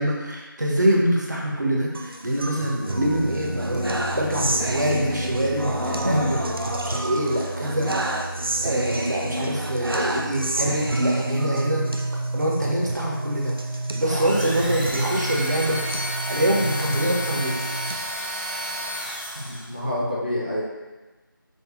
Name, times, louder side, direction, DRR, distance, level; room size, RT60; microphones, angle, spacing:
voice 1, 0.0-7.9 8.6-11.9 12.3-13.5 13.9-15.8 16.3-17.6, right 1 dB, 55° right, -2 dB, 0.9 m, -25 dB
sound 1, 1.9-17.9, right 1 dB, 85° right, 0.5 m, -28 dB
sound 2, 14.0-19.8, equal, 25° right, 0.4 m, -31 dB
voice 2, 19.4-20.6, equal, 25° left, -8 dB, 0.6 m, -27 dB
5.3 x 2.2 x 3.6 m, 1.2 s
figure-of-eight pair, 170°, 12 cm